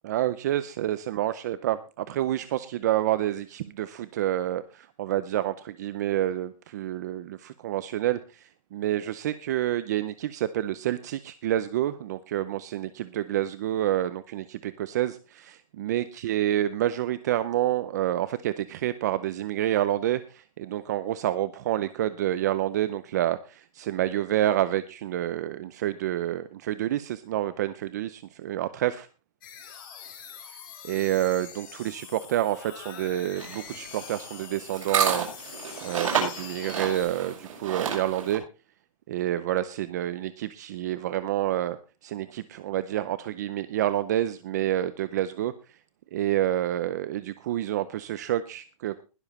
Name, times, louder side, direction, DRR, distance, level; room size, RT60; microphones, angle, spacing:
voice 1, 0.0-29.1 30.8-38.4 39.1-45.5 46.1-49.0, right 13 dB, 30° right, 13 dB, 0.6 m, -28 dB
sound 1, 29.4-37.0, left 7 dB, 40° left, 4.2 m, -44 dB
sound 2, 33.3-38.4, right 6 dB, 70° right, 7.0 m, -30 dB
20.5 x 7.1 x 4.2 m, 0.31 s
hypercardioid pair, 180°, 17 cm